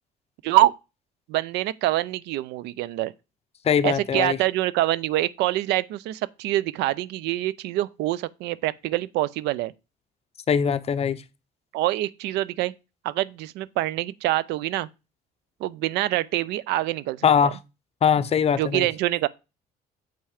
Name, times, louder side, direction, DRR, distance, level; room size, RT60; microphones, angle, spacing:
voice 1, 1.3-3.1 3.8-9.7 11.7-12.7 13.0-14.9 15.6-17.3 18.5-19.3, right 15 dB, 90° right, 0.5 m, -25 dB
voice 2, 3.6-4.4 10.5-11.2 17.2-17.5 18.0-18.9, left 7 dB, 35° left, 0.7 m, -21 dB
7.7 x 5.6 x 4.9 m
cardioid pair, 110°, 17 cm